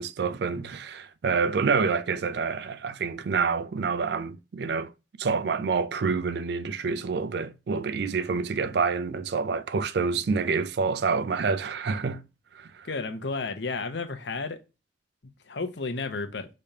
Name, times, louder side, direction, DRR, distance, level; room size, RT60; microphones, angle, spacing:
voice 1, 0.0-4.9 5.2-12.2 12.5-12.9, right 5 dB, 65° right, 0.4 m, -27 dB
voice 2, 12.8-14.6 15.5-16.5, left 3 dB, 75° left, 0.8 m, -32 dB
5.2 x 3.3 x 2.7 m
head